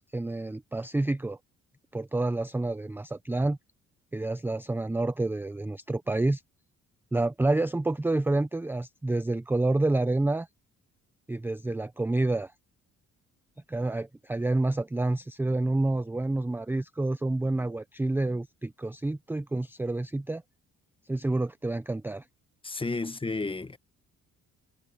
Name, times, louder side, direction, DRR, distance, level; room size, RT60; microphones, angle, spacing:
voice 1, 0.0-1.4 1.9-3.6 4.1-6.4 7.1-10.5 11.3-12.5 13.7-20.4 21.1-22.2, right 2 dB, 5° right, 0.5 m, -28 dB
voice 2, 22.6-23.8, left 3 dB, 15° left, 1.1 m, -32 dB
cardioid pair, 90°, 30 cm